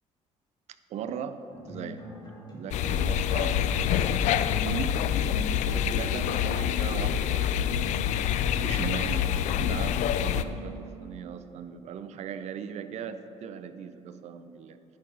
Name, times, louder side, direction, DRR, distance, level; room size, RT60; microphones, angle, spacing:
voice 1, 0.9-1.4 1.7-2.0 2.5-4.1 4.6-4.9 5.7-7.5 8.5-14.8, right 8 dB, 60° right, 11 dB, 0.5 m, -38 dB
sound 1, 1.5-2.8 3.1-11.2, left 1 dB, 35° left, 1.8 m, -44 dB
sound 2, 2.7-10.4, left 9 dB, 70° left, 0.4 m, -26 dB
10.0 x 4.6 x 5.6 m, 2.9 s
cardioid pair, 110°, 13 cm